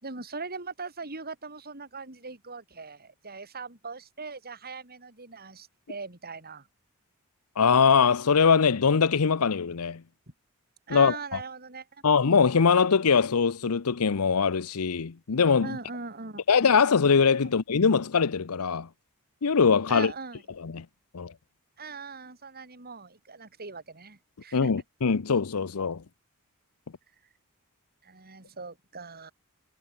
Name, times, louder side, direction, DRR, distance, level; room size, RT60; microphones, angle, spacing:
voice 1, 0.0-6.7 10.9-12.0 15.6-16.4 19.9-20.4 21.8-24.7 28.0-29.3, right 4 dB, 45° right, 4.7 m, -40 dB
voice 2, 7.6-10.0 10.9-11.4 12.0-15.7 16.5-18.9 19.4-20.1 20.6-20.8 21.1-21.3 24.5-26.0, left 5 dB, 80° left, 0.7 m, -22 dB
head